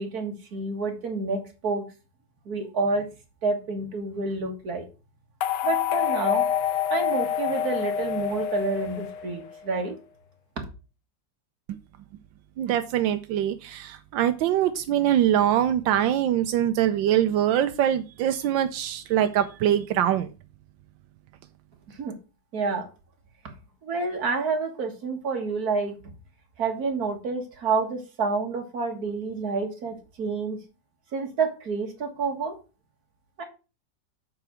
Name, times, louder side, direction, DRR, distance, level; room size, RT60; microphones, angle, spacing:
voice 1, 0.0-1.8 2.5-3.1 3.4-4.9 5.6-6.5 6.9-10.0 10.6-10.7 22.0-22.1 22.5-22.9 23.8-25.9 26.6-30.6 31.1-32.5 33.4-33.5, right 4 dB, 55° right, 3 dB, 2.2 m, -28 dB
sound 1, 5.4-9.6, left 9 dB, 70° left, 1.3 m, -27 dB
voice 2, 12.6-20.3, right 11 dB, 85° right, 9 dB, 1.4 m, -23 dB
7.9 x 4.8 x 6.2 m, 0.32 s
omnidirectional pair, 2.0 m